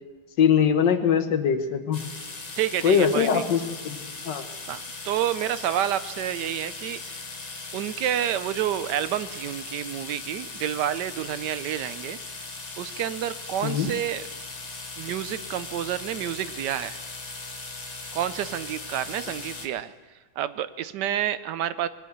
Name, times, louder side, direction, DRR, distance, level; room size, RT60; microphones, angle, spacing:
voice 1, 0.4-2.0 2.8-4.0 4.3-4.4 13.6-13.9, left 7 dB, 80° left, 8 dB, 1.7 m, -22 dB
sound 1, 1.9-19.7, left 3 dB, 30° left, 1.0 m, -39 dB
voice 2, 2.6-3.4 4.7-7.2 7.7-12.2 12.8-14.3 15.0-17.0 18.1-19.9 20.4-21.9, right 11 dB, 75° right, 14 dB, 1.2 m, -29 dB
20.5 x 8.4 x 7.9 m, 1.4 s
omnidirectional pair, 1.9 m